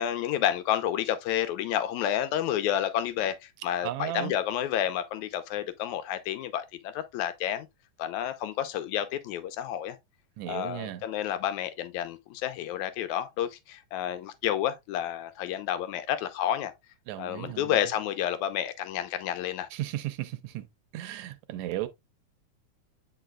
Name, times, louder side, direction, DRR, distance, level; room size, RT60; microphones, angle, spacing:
voice 1, 0.0-7.7 8.0-10.0 10.5-16.7 17.2-19.7, left 11 dB, 85° left, 2.2 m, -30 dB
voice 2, 3.8-4.3 10.4-11.0 17.1-17.8 19.7-20.7 20.9-21.9, right 14 dB, 80° right, 2.0 m, -35 dB
9.2 x 4.8 x 2.3 m
omnidirectional pair, 3.4 m